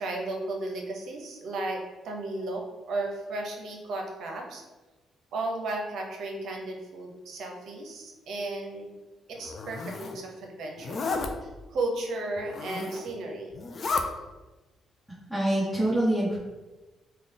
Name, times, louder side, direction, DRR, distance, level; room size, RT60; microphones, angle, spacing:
voice 1, 0.0-4.6 5.3-8.9 9.3-11.1 11.7-13.6, right 2 dB, 70° right, 2 dB, 0.7 m, -34 dB
Zipper (clothing), 9.4-10.2 10.8-11.3 12.4-13.1 13.5-14.1, left 4 dB, 45° left, 0.4 m, -32 dB
voice 2, 15.3-16.4, right 1 dB, 5° left, -10 dB, 1.2 m, -25 dB
3.7 x 2.2 x 3.7 m, 1.2 s
cardioid pair, 90°, 0 cm